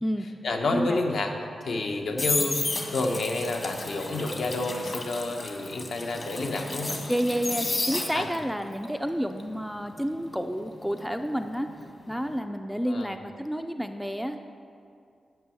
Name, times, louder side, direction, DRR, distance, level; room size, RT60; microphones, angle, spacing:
voice 1, 0.4-1.3 1.6-2.6 2.9-7.0 8.1-8.3 12.9-13.1, left 2 dB, 65° left, 2 dB, 1.1 m, -29 dB
sound 1, 1.7-8.5 8.8-11.7 12.0-12.3, left 2 dB, 40° left, 1.3 m, -32 dB
voice 2, 7.1-11.7 12.1-14.4, equal, ahead, 7 dB, 0.4 m, -30 dB
9.4 x 6.2 x 7.2 m, 2.3 s
wide cardioid pair, 140°, 0 cm